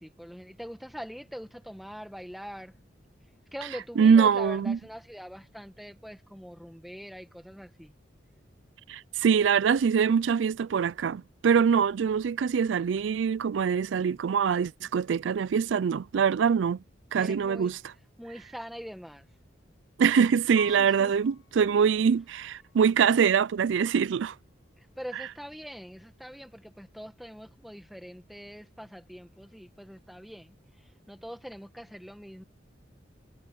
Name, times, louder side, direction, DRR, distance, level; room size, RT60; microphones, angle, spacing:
voice 1, 0.0-2.7 3.5-7.9 17.2-17.7 18.2-19.3 20.6-21.2 24.8-32.4, equal, ahead, 1.2 m, -43 dB
voice 2, 4.0-4.8 8.9-16.8 17.1-17.8 20.0-24.3, right 6 dB, 75° right, 0.4 m, -24 dB
Piano, 20.6-23.3 23.9-24.6, left 10 dB, 65° left, 2.1 m, -51 dB
head